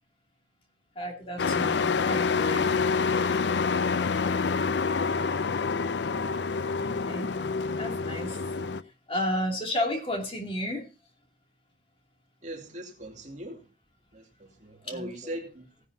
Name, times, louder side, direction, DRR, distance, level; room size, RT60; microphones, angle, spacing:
voice 1, 1.0-2.7 6.8-7.3 7.8-8.4 9.1-10.8 14.9-15.3, left 1 dB, 30° left, 2.6 m, -32 dB
Truck, 1.4-8.8, left 5 dB, 65° left, 0.5 m, -27 dB
voice 2, 3.8-4.5 12.4-13.6 14.1-15.7, right 1 dB, 40° right, 2.6 m, -41 dB
17.0 x 11.0 x 2.7 m
head